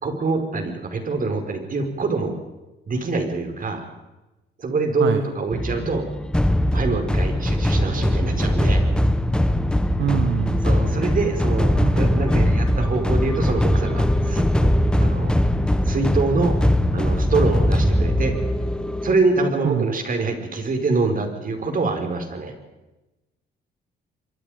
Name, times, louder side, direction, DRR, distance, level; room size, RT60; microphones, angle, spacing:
voice 1, 0.0-2.3 2.9-3.9 4.6-6.0 6.7-8.8 10.6-14.7 15.0-15.3 15.8-16.6 16.9-18.4 19.0-22.5, right 3 dB, 45° right, 5 dB, 5.3 m, -25 dB
sound 1, 5.5-19.2, left 1 dB, 5° left, 1.2 m, -21 dB
voice 2, 10.0-10.6 11.8-12.6 19.6-19.9, right 8 dB, 65° right, 9 dB, 1.5 m, -24 dB
28.5 x 23.0 x 5.3 m, 1.0 s
cardioid pair, 90°, 20 cm